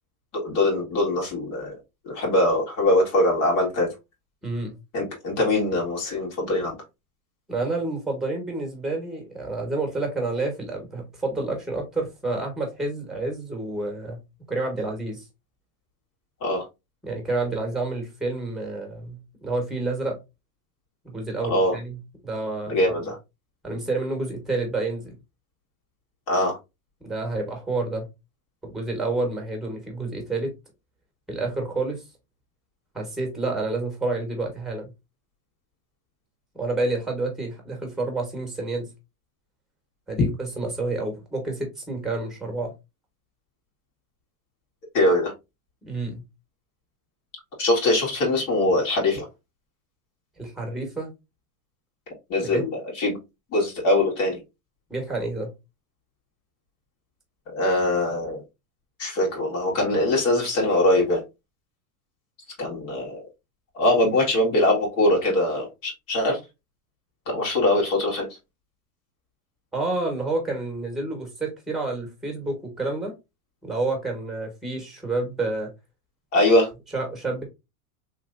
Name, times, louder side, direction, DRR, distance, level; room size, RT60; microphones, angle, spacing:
voice 1, 0.4-1.8 2.0-3.9 4.9-6.8 16.4-16.6 21.5-21.8 22.7-23.2 26.3-26.5 44.9-45.3 47.6-49.2 52.3-53.2 53.5-54.4 57.5-58.4 59.0-61.2 62.6-63.2 63.7-66.4 67.3-68.3 76.3-76.7, left 1 dB, 55° left, 1.9 m, -22 dB
voice 2, 4.4-4.8 7.5-14.2 14.5-15.2 17.0-20.2 21.0-22.7 23.0-23.1 23.6-25.2 27.0-28.1 28.6-30.5 31.3-32.0 32.9-34.9 36.5-38.9 40.1-42.7 45.8-46.3 50.4-51.1 52.4-52.6 54.9-55.5 69.7-73.1 73.6-75.7 76.9-77.4, right 2 dB, ahead, 1.2 m, -29 dB
3.2 x 2.9 x 2.5 m
supercardioid pair, 130°, 44 cm